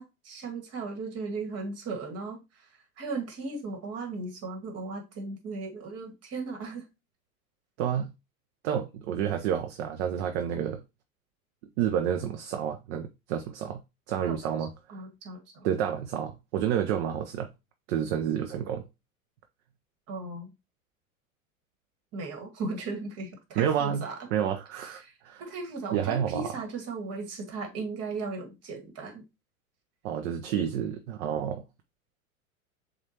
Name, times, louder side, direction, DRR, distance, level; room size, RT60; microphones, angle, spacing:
voice 1, 0.0-2.7 3.0-6.9 14.3-14.4 14.9-15.7 20.1-20.5 22.1-24.3 24.8-25.1 25.4-29.3, right 3 dB, 35° right, 1.7 m, -37 dB
voice 2, 7.8-8.1 8.6-10.8 11.8-13.8 14.1-14.7 15.6-17.5 17.9-18.9 23.6-24.0 24.3-25.4 25.9-26.5 30.0-31.6, right 9 dB, 55° right, 0.7 m, -29 dB
7.1 x 2.6 x 2.9 m
hypercardioid pair, 100°, 43 cm